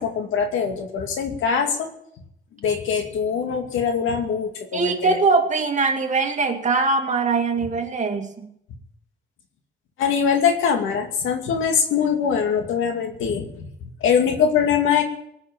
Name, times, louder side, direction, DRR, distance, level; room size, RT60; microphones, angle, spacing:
voice 1, 0.0-1.9 2.6-5.2 10.0-13.5 13.8-15.0, left 7 dB, 80° left, 4 dB, 2.4 m, -22 dB
voice 2, 4.7-8.5, right 4 dB, 35° right, 4 dB, 2.3 m, -22 dB
19.0 x 6.5 x 8.8 m, 0.75 s
cardioid pair, 90°, 20 cm